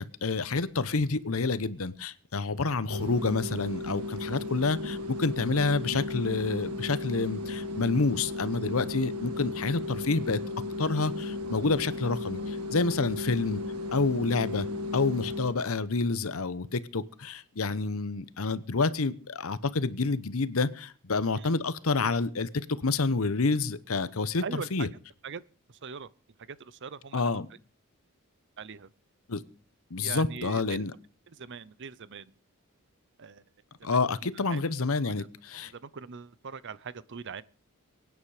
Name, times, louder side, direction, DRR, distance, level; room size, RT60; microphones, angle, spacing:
voice 1, 0.0-10.4 10.8-13.6 13.9-14.7 14.9-24.9 27.1-27.5 29.3-29.4 29.9-30.9 33.8-35.7, left 3 dB, 70° left, 0.9 m, -28 dB
sound 1, 2.9-15.6, left 2 dB, 85° right, 1.6 m, -35 dB
voice 2, 24.4-24.9 25.2-25.4 25.8-26.1 26.5-27.4 28.6-28.9 30.0-30.8 31.3-32.3 33.2-33.4 34.5-34.6 35.0-35.3 35.7-37.4, right 5 dB, 55° right, 0.7 m, -41 dB
23.0 x 9.5 x 4.9 m
head